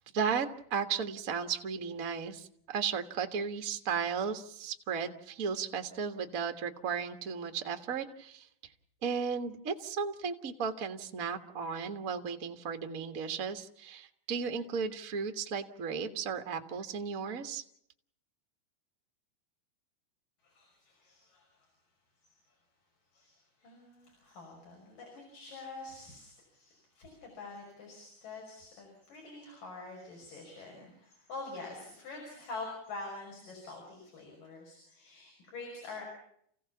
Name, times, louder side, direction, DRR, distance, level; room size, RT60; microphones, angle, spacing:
voice 1, 0.1-8.5 9.0-17.6, right 6 dB, 40° right, 6 dB, 1.2 m, -35 dB
voice 2, 20.4-21.7 22.2-22.6 23.1-36.0, left 3 dB, 80° left, 0 dB, 7.5 m, -46 dB
30.0 x 16.5 x 7.2 m, 0.70 s
omnidirectional pair, 3.8 m